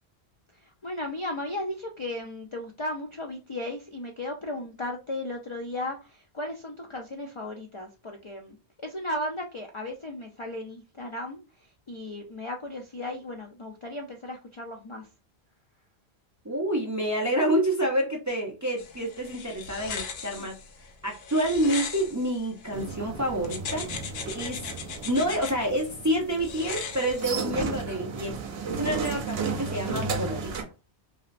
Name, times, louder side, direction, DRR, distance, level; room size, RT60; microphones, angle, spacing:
voice 1, 0.5-15.1 20.4-20.5, left 1 dB, 50° left, 0.3 m, -36 dB
voice 2, 16.4-20.6 21.0-23.9 24.3-24.8 25.0-28.4 28.7-30.6, right 1 dB, 30° right, 0.4 m, -28 dB
sound 1, 18.8-22.9 23.4-25.5 26.4-27.7, left 5 dB, 75° left, 0.8 m, -38 dB
sound 2, 22.7-30.6, right 5 dB, 75° right, 0.8 m, -34 dB
3.0 x 2.7 x 2.4 m
omnidirectional pair, 1.1 m